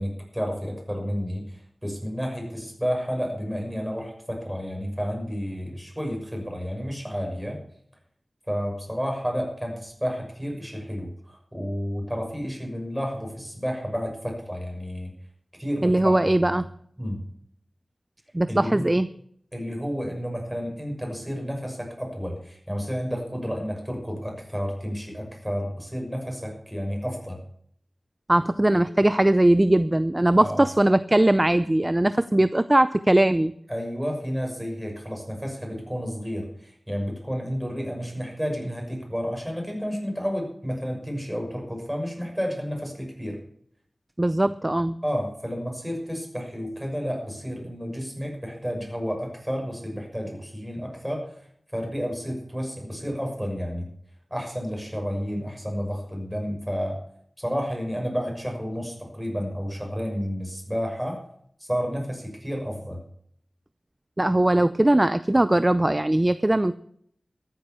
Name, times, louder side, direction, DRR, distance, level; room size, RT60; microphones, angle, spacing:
voice 1, 0.0-7.6 8.5-15.1 15.6-16.1 17.0-17.2 18.5-18.9 19.5-27.4 30.4-30.6 33.7-43.4 45.0-51.3 51.7-53.9 54.3-57.0 57.4-61.2 61.6-63.0, equal, 5° right, 1 dB, 6.3 m, -31 dB
voice 2, 15.8-16.7 18.3-19.1 28.3-33.5 44.2-45.0 64.2-66.8, right 1 dB, 25° right, 14 dB, 0.5 m, -20 dB
14.0 x 9.4 x 7.1 m, 0.66 s
wide cardioid pair, 65°, 0 cm